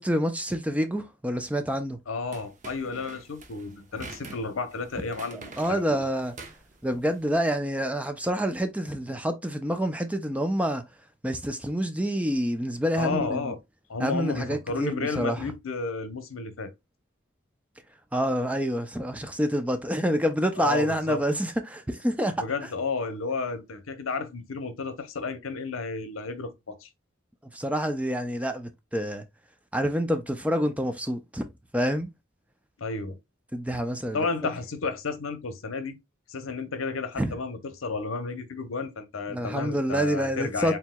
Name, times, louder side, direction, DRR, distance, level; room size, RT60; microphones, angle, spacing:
voice 1, 0.0-2.0 5.3-6.3 6.8-10.8 11.2-13.6 14.0-15.5 18.1-22.3 22.6-22.7 27.5-29.2 29.7-31.5 31.7-32.1 33.5-34.3 37.2-37.4 39.3-40.8, equal, 5° right, 0.4 m, -27 dB
voice 2, 2.1-5.9 13.0-13.6 13.9-16.7 20.6-21.2 22.4-26.9 32.8-33.2 34.1-36.0 36.3-40.8, left 4 dB, 90° left, 0.8 m, -32 dB
sound 1, 2.3-7.3, right 3 dB, 40° right, 0.8 m, -46 dB
4.5 x 4.0 x 2.2 m
head